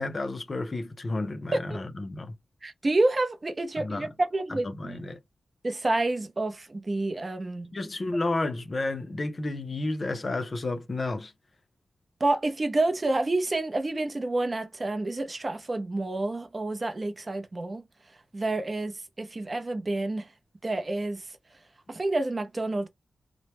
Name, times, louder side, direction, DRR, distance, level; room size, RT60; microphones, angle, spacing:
voice 1, 0.0-2.3 3.8-4.1 4.5-5.2 7.7-11.3, left 2 dB, 35° left, 0.5 m, -31 dB
voice 2, 2.6-5.0 5.6-7.7 12.2-17.8 18.3-20.3 20.6-21.2 21.9-22.9, right 2 dB, 30° right, 0.6 m, -28 dB
3.0 x 2.1 x 2.9 m
wide cardioid pair, 135°, 0 cm